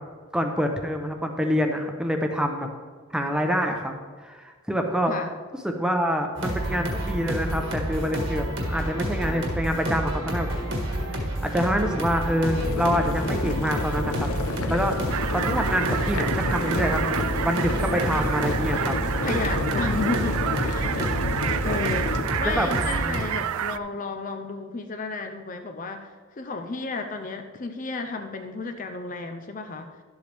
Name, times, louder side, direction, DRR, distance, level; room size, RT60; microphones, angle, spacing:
voice 1, 0.3-2.7 3.1-3.9 4.2-5.1 5.6-10.5 11.1-14.3 14.7-15.0 15.3-18.9 22.4-22.7, equal, 5° right, 3 dB, 0.8 m, -26 dB
sound 1, 6.3-23.2, equal, 60° right, 1.7 m, -29 dB
Boiling water, 12.6-22.2, left 2 dB, 80° left, 0.7 m, -31 dB
sound 2, 15.1-23.8, right 10 dB, 75° right, 0.3 m, -30 dB
voice 2, 19.2-21.1 21.6-30.0, left 3 dB, 35° left, 6 dB, 0.6 m, -32 dB
12.0 x 7.9 x 3.4 m, 1.5 s
head